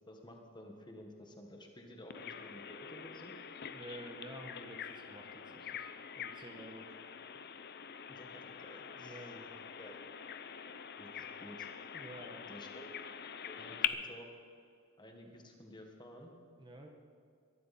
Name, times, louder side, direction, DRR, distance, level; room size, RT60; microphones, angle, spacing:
voice 1, 0.0-3.3 8.1-9.5 9.8-10.0 11.0-11.7 12.5-12.9 13.5-14.3 15.0-16.3, left 1 dB, 20° left, 2 dB, 1.6 m, -53 dB
Bird vocalization bird call bird song, 2.1-13.9, left 8 dB, 45° left, 0.6 m, -44 dB
voice 2, 3.7-5.9 6.1-6.9 9.0-9.6 11.9-12.5 16.6-16.9, right 1 dB, 20° right, 2 dB, 1.2 m, -50 dB
22.5 x 12.0 x 4.3 m, 2.3 s
head